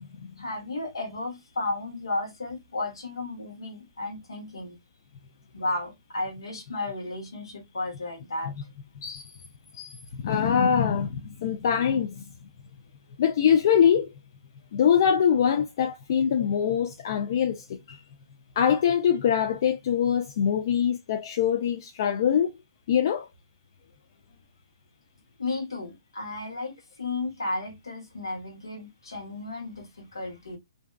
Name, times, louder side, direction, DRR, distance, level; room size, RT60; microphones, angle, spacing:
voice 1, 0.4-4.8 5.5-8.5 25.4-30.6, left 2 dB, 80° left, 1.1 m, -33 dB
voice 2, 9.7-12.2 13.2-14.1 14.7-18.0 18.6-22.5 22.9-23.3, left 8 dB, 55° left, 0.3 m, -23 dB
2.6 x 2.2 x 2.2 m
hypercardioid pair, 130°, 2 cm